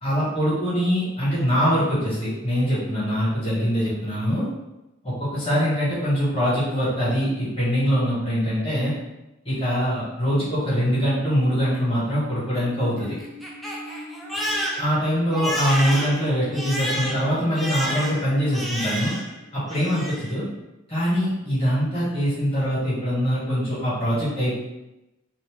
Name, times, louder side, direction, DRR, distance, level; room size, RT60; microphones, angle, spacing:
voice 1, 0.0-4.4 5.0-8.9 9.4-13.2 14.8-19.1 19.5-20.4 20.9-24.6, equal, 30° left, -8 dB, 1.2 m, -23 dB
Crying sobbing, 12.4-19.4 19.7-20.3, equal, ahead, 0.3 m, -31 dB
2.6 x 2.0 x 3.2 m, 0.97 s
head